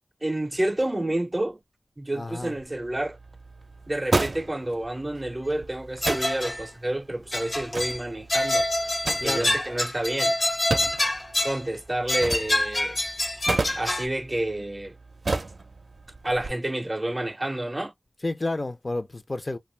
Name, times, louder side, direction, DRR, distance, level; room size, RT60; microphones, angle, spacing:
voice 1, 0.2-1.6 2.0-3.2 3.9-8.7 9.2-10.4 11.4-13.0 13.8-15.0 16.2-17.9, right 1 dB, 30° right, 0.4 m, -29 dB
voice 2, 2.1-2.5 9.2-9.6 18.2-19.6, left 2 dB, 50° left, 0.4 m, -30 dB
sound 1, 2.4-16.5, right 3 dB, 85° right, 0.4 m, -34 dB
sound 2, 6.0-6.7 7.3-8.0 8.3-11.6 12.1-14.1, left 1 dB, 80° left, 0.7 m, -26 dB
2.5 x 2.2 x 3.1 m
wide cardioid pair, 55°, 0 cm